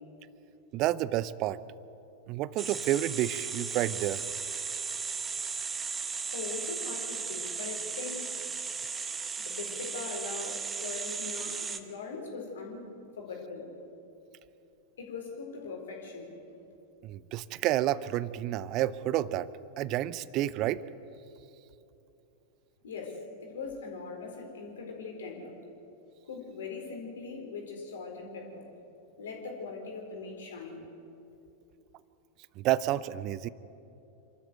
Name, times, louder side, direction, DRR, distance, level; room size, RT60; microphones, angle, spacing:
voice 1, 0.7-1.6 2.3-4.2 17.0-19.5 19.8-20.8 32.6-33.5, right 14 dB, 40° right, 18 dB, 0.6 m, -30 dB
sound 1, 2.6-11.8, right 5 dB, 20° right, 1.2 m, -36 dB
voice 2, 6.3-8.3 9.5-12.9 13.2-13.7 15.0-16.4 22.8-25.5 26.3-28.6 29.2-30.9, left 4 dB, 65° left, 1 dB, 4.2 m, -41 dB
27.5 x 13.0 x 8.0 m, 2.8 s
figure-of-eight pair, 90°, 0 cm